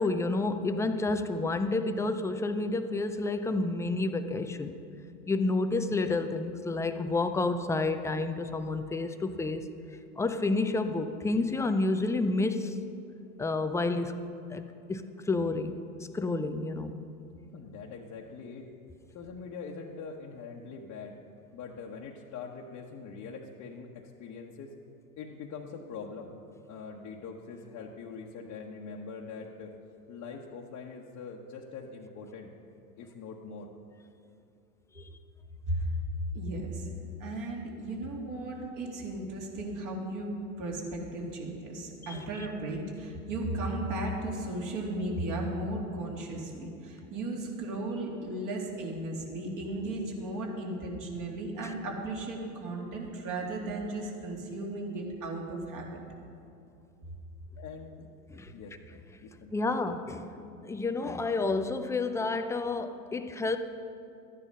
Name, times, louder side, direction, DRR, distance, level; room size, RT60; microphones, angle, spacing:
voice 1, 0.0-4.8 5.3-9.7 10.2-12.8 13.4-14.2 14.5-14.6 14.9-16.9 34.9-35.2 42.0-42.5 51.6-51.7 58.3-58.5 59.5-63.6, left 3 dB, 5° left, 8 dB, 0.4 m, -30 dB
voice 2, 17.5-18.7 19.1-21.2 21.5-24.7 25.2-26.3 26.7-29.7 30.1-32.5 33.0-33.7 37.9-38.1 57.6-58.1 58.5-58.8 59.2-59.7 63.0-63.1, left 5 dB, 35° left, -2 dB, 1.2 m, -43 dB
voice 3, 36.3-36.9 37.2-56.0, right 2 dB, 40° right, -1 dB, 3.0 m, -35 dB
13.5 x 10.0 x 5.5 m, 2.6 s
hypercardioid pair, 95°, 46 cm